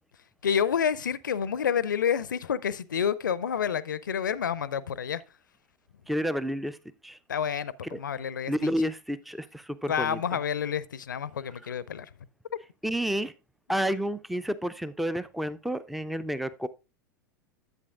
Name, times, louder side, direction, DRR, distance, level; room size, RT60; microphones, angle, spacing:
voice 1, 0.4-5.2 7.3-8.7 9.9-12.1, left 8 dB, 70° left, 0.5 m, -29 dB
voice 2, 6.1-6.8 7.0-7.2 7.9-8.0 8.5-10.2 12.8-13.3 13.7-16.7, equal, ahead, 0.4 m, -30 dB
10.5 x 8.1 x 2.4 m
figure-of-eight pair, 85°, 11 cm